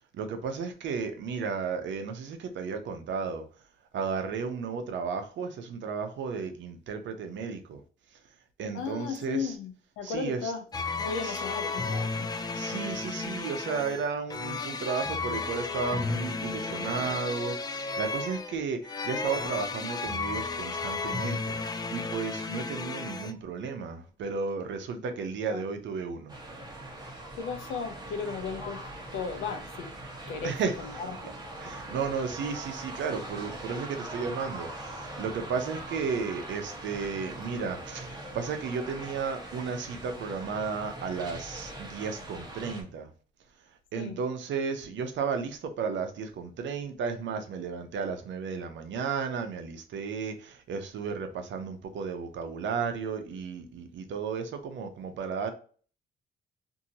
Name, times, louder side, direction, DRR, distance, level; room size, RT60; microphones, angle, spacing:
voice 1, 0.1-3.4 3.9-7.8 8.6-9.5 10.0-10.5 11.2-11.4 12.5-26.3 30.4-30.8 31.6-43.1 43.9-55.5, right 5 dB, 70° right, 0.7 m, -34 dB
voice 2, 8.7-10.6 11.0-12.3 25.5-25.6 27.3-28.8 29.1-29.9 30.3-31.3 43.9-44.2, left 5 dB, 85° left, 0.7 m, -35 dB
sound 1, 10.7-23.3, left 4 dB, 20° left, 0.3 m, -33 dB
sound 2, 26.3-42.8, right 1 dB, 20° right, 0.9 m, -41 dB
2.7 x 2.6 x 2.7 m
cardioid pair, 90°, 20 cm